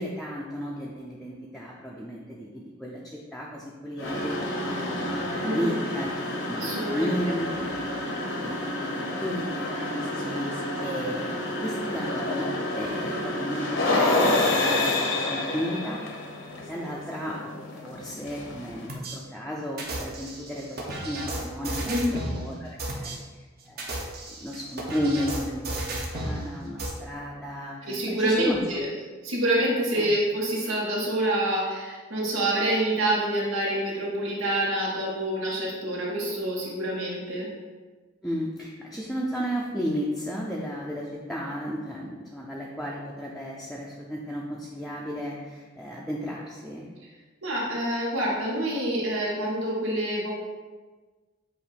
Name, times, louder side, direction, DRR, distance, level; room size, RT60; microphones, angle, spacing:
voice 1, 0.0-6.1 6.5-7.5 8.1-10.5 10.8-16.0 16.7-17.5 17.8-23.2 23.7-28.6 30.0-30.1 38.2-46.9, equal, ahead, -4 dB, 0.5 m, -34 dB
sound 1, 4.0-18.9, left 2 dB, 70° left, 1.0 m, -29 dB
voice 2, 5.4-5.8 6.6-7.3 21.9-22.1 27.8-28.9 29.2-37.5 47.4-50.3, right 1 dB, 90° right, -5 dB, 1.8 m, -27 dB
sound 2, 18.9-19.2 19.8-22.4 22.8-23.1 23.7-26.4 26.8-26.9, right 1 dB, 50° right, 1.1 m, -33 dB
8.0 x 2.7 x 4.9 m, 1.4 s
head